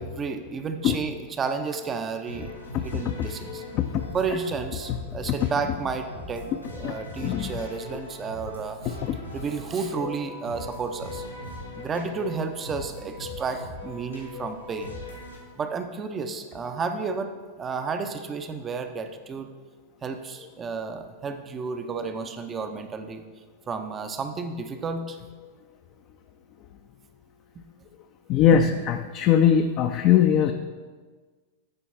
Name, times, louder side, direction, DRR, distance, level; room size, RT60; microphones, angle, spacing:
voice 1, 0.0-3.6 4.1-9.0 9.3-11.2 11.7-15.0 15.6-19.5 20.0-23.2 23.7-25.2 28.5-28.6, right 5 dB, 25° right, 8 dB, 0.5 m, -32 dB
sound 1, 2.3-15.4, left 2 dB, 85° left, 1.8 m, -40 dB
voice 2, 2.7-3.3 3.7-4.0 4.9-5.0 5.3-5.4 6.8-6.9 7.2-7.5 9.0-9.2 28.3-30.5, left 9 dB, 40° left, 6 dB, 0.3 m, -21 dB
8.8 x 4.6 x 4.1 m, 1.4 s
figure-of-eight pair, 90°, 0 cm